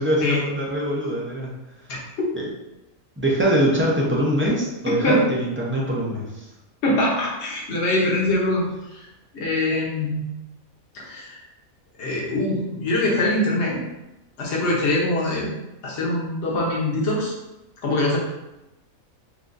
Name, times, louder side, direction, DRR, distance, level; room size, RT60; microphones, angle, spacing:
voice 1, 0.0-1.5 2.4-2.5 3.2-6.4, right 1 dB, 15° right, -4 dB, 0.4 m, -23 dB
voice 2, 6.8-9.1 9.3-10.3 10.9-11.4 12.0-13.8 14.4-15.5 15.8-17.3 17.8-18.2, left 1 dB, 55° left, -3 dB, 1.2 m, -23 dB
6.4 x 2.4 x 2.6 m, 0.95 s
omnidirectional pair, 1.5 m